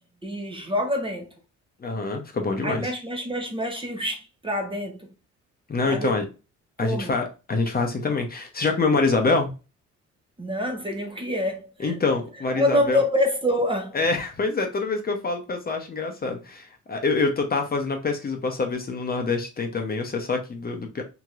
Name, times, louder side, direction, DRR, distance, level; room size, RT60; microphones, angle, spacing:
voice 1, 0.2-1.3 2.6-5.1 5.8-6.2 6.8-7.1 10.4-11.9 12.6-14.0, left 1 dB, 15° right, 0.7 m, -26 dB
voice 2, 1.8-2.9 5.7-6.3 6.8-9.5 11.8-13.0 13.9-21.0, left 3 dB, 30° left, 0.7 m, -25 dB
2.9 x 2.9 x 2.3 m
cardioid pair, 90°, 30 cm